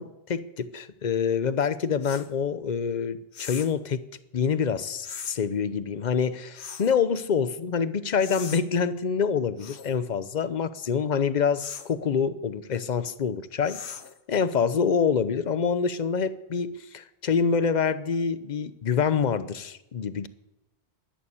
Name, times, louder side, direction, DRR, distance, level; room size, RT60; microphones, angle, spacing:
voice 1, 0.0-4.1 4.3-13.8 14.3-20.3, left 6 dB, 50° left, 14 dB, 0.8 m, -26 dB
sound 1, 2.0-2.3 3.3-3.8 5.0-5.4 6.6-7.0 8.2-8.6 9.6-9.9 11.6-11.9 13.6-14.2, left 7 dB, 90° left, 1.2 m, -39 dB
11.5 x 11.0 x 8.3 m, 0.92 s
omnidirectional pair, 1.1 m